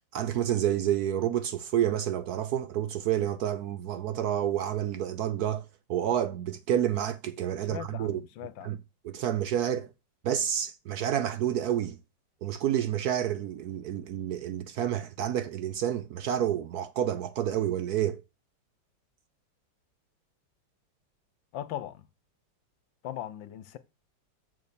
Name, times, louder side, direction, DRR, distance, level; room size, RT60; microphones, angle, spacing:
voice 1, 0.1-5.6 5.9-8.2 8.6-8.8 9.0-9.9 10.2-12.0 12.4-18.2, right 10 dB, 65° right, 1.0 m, -29 dB
voice 2, 7.6-8.8 21.5-22.0 23.0-23.8, left 11 dB, 75° left, 1.5 m, -39 dB
6.7 x 6.6 x 7.0 m
omnidirectional pair, 2.1 m